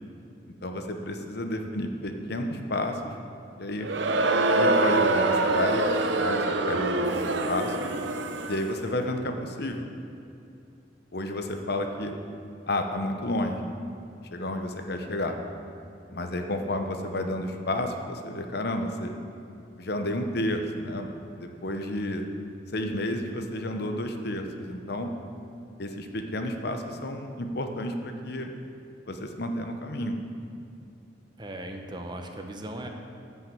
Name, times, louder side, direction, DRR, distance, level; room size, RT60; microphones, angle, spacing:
voice 1, 0.6-3.1 3.6-3.9 4.4-5.9 6.2-7.2 7.5-7.9 8.5-9.9 11.1-12.1 12.7-13.6 14.3-15.4 16.1-19.1 19.8-21.1 21.3-22.2 22.7-25.1 25.8-28.5 29.1-30.2, left 1 dB, 60° left, 5 dB, 1.0 m, -31 dB
Crowd, 3.8-8.8, right 2 dB, 80° right, 0.8 m, -25 dB
voice 2, 31.4-32.9, right 1 dB, 25° right, 3 dB, 1.0 m, -37 dB
14.0 x 5.8 x 7.7 m, 2.6 s
head